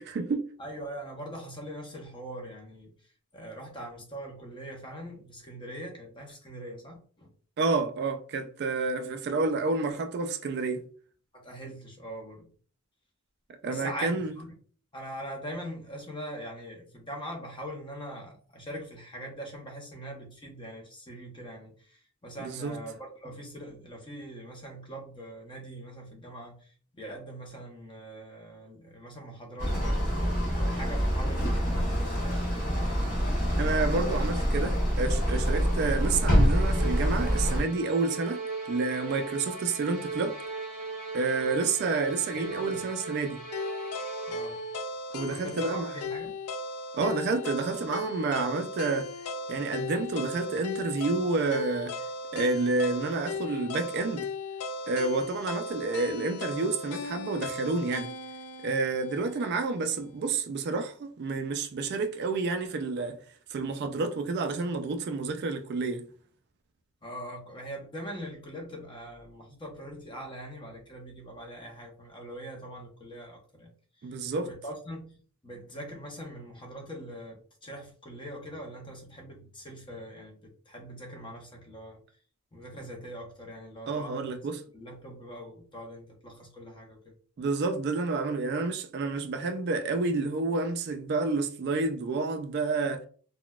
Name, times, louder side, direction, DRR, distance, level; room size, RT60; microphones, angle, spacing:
voice 1, 0.0-0.4 7.6-10.8 13.6-14.3 22.4-22.8 33.6-38.4 38.7-40.4 41.1-43.4 45.1-45.9 46.9-49.1 49.5-52.0 52.3-54.3 54.9-58.1 58.6-63.2 63.5-66.1 74.0-74.5 83.9-84.6 87.4-93.0, right 3 dB, 50° right, 0.3 m, -29 dB
voice 2, 0.6-7.3 11.3-12.5 13.6-14.5 14.9-30.3 30.6-32.8 42.3-42.9 44.3-44.6 45.3-46.3 67.0-73.7 74.0-75.2 75.4-82.0 82.5-84.4 84.7-87.1, equal, 20° left, 0.7 m, -42 dB
sound 1, 29.6-37.6, equal, 40° left, 1.3 m, -26 dB
sound 2, 34.5-45.0, right 4 dB, 5° left, 1.0 m, -39 dB
sound 3, 43.5-59.6, left 2 dB, 80° left, 0.4 m, -37 dB
3.8 x 2.2 x 2.3 m
head